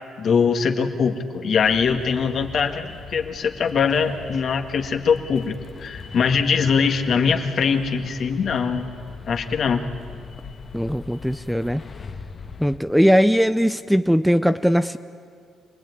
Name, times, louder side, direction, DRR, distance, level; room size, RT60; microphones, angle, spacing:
voice 1, 0.2-8.9 9.3-9.9, left 6 dB, 60° left, 5 dB, 1.9 m, -22 dB
sound 1, 1.5-12.8, left 5 dB, 40° left, 1.4 m, -40 dB
voice 2, 10.7-11.8 12.6-15.0, equal, ahead, 12 dB, 0.6 m, -19 dB
26.5 x 19.5 x 9.6 m, 2.3 s
cardioid pair, 90°, 0 cm